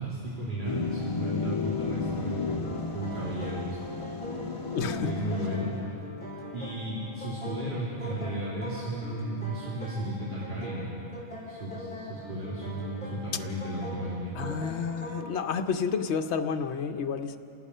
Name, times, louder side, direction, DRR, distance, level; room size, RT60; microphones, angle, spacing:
voice 1, 0.0-2.6 2.9-3.8 5.0-5.7 6.5-10.9 11.5-14.3, right 1 dB, 45° right, -7 dB, 3.0 m, -34 dB
sound 1, 0.6-5.9, left 4 dB, 30° left, 1.9 m, -33 dB
sound 2, 2.6-15.4, left 1 dB, 10° left, 4.0 m, -42 dB
voice 2, 4.7-5.1 14.4-17.4, left 6 dB, 80° left, 7 dB, 1.1 m, -30 dB
27.5 x 17.5 x 5.5 m, 2.8 s
omnidirectional pair, 1.1 m